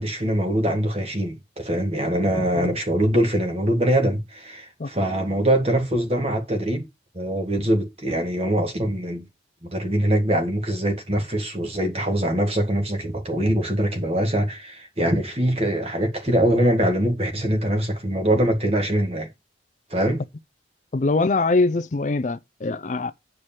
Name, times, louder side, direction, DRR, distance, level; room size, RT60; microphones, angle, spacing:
voice 1, 0.0-6.9 7.1-9.2 9.6-19.3 19.9-20.2, right 1 dB, 35° right, 1.7 m, -23 dB
voice 2, 20.9-23.1, left 3 dB, 40° left, 0.4 m, -23 dB
9.0 x 4.8 x 4.3 m
head